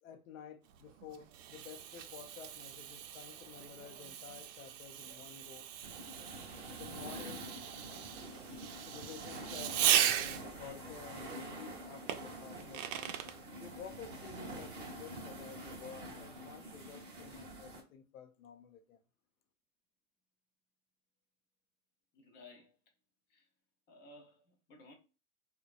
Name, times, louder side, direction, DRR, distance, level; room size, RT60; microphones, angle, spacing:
voice 1, 0.0-5.7 6.8-7.4 8.8-13.1 13.6-19.0, left 7 dB, 90° left, 0.7 m, -52 dB
Fireworks, 0.7-10.7 12.1-13.4, right 10 dB, 65° right, 0.5 m, -37 dB
sound 1, 5.8-17.8, right 1 dB, 25° right, 0.7 m, -47 dB
voice 2, 22.1-22.8 23.3-23.5 23.9-24.9, left 2 dB, 25° left, 0.6 m, -57 dB
2.9 x 2.2 x 2.4 m
supercardioid pair, 145°, 40 cm